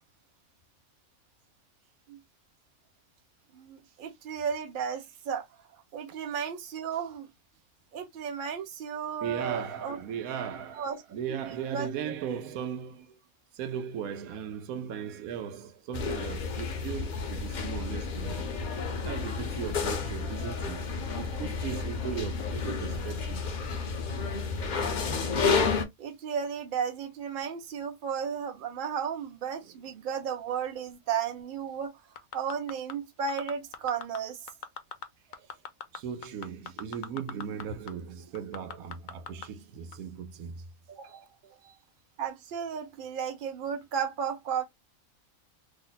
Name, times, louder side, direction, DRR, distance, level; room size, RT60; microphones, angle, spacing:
voice 1, 3.5-5.5 5.9-7.3 7.9-10.0 10.8-11.9 21.1-21.4 26.0-31.9 32.3-34.5 40.9-41.3 42.2-44.6, right 7 dB, 45° right, 0.8 m, -34 dB
voice 2, 9.2-13.1 13.5-18.5 19.0-23.5 29.6-29.7 35.9-40.6 41.1-41.8, right 8 dB, 85° right, 1.0 m, -38 dB
sound 1, 15.9-25.9, left 5 dB, 50° left, 0.6 m, -31 dB
sound 2, 32.2-32.9 33.3-34.2 34.5-35.1 35.3-37.6 37.9-38.0 38.3-39.5 39.9-40.0, left 7 dB, 75° left, 1.0 m, -39 dB
3.0 x 2.0 x 3.9 m
omnidirectional pair, 1.4 m